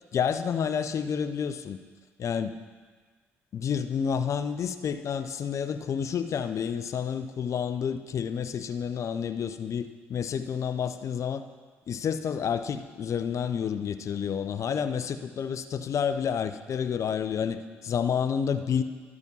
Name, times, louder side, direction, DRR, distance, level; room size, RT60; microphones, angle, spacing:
voice 1, 0.1-1.8 2.2-2.6 3.5-11.4 11.9-18.8, left 7 dB, 55° left, 10 dB, 0.6 m, -29 dB
12.0 x 4.9 x 5.4 m, 1.5 s
hypercardioid pair, 55°, 6 cm